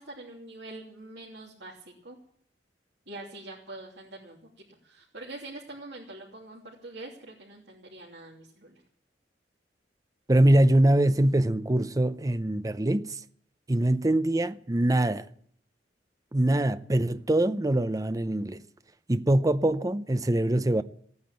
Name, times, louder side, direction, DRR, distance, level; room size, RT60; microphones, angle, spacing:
voice 1, 0.0-2.2 3.1-8.8, right 2 dB, 75° right, 3.0 m, -44 dB
voice 2, 10.3-13.2 13.7-15.3 16.3-18.6 19.1-20.8, right 1 dB, 20° right, 0.6 m, -23 dB
17.0 x 9.6 x 8.9 m
head